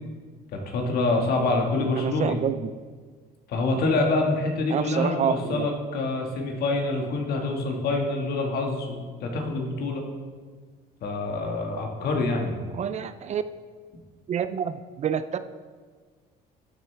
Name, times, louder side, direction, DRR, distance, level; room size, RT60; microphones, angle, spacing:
voice 1, 0.5-2.4 3.5-10.0 11.0-12.6, left 2 dB, 65° left, 1 dB, 1.7 m, -26 dB
voice 2, 1.9-2.7 4.7-5.7 12.7-13.4 14.3-15.4, right 8 dB, 40° right, 12 dB, 0.4 m, -27 dB
11.5 x 7.8 x 3.4 m, 1.5 s
cardioid pair, 110°, 17 cm